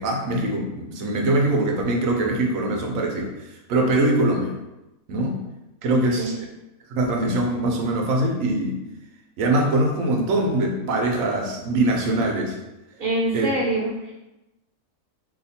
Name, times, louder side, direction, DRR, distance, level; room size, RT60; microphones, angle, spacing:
voice 1, 0.0-3.3 3.7-4.5 5.1-5.4 5.8-6.3 6.9-8.7 9.4-12.6 13.3-13.5, right 1 dB, 65° right, 1 dB, 1.0 m, -22 dB
voice 2, 5.9-6.4 13.0-14.1, right 1 dB, 45° right, -5 dB, 0.8 m, -25 dB
2.8 x 2.4 x 4.1 m, 0.98 s
omnidirectional pair, 1.6 m